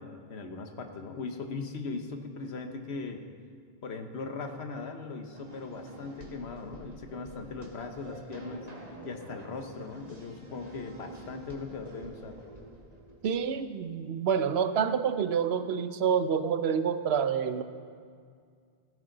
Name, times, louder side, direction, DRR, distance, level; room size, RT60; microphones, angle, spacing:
voice 1, 0.0-3.2 3.8-8.7 9.0-12.4, left 4 dB, 85° left, 5 dB, 1.3 m, -39 dB
sound 1, 5.3-13.6, right 1 dB, 40° right, 1.9 m, -47 dB
voice 2, 13.2-17.6, right 7 dB, 80° right, 11 dB, 0.9 m, -28 dB
15.0 x 13.0 x 3.9 m, 2.1 s
omnidirectional pair, 1.1 m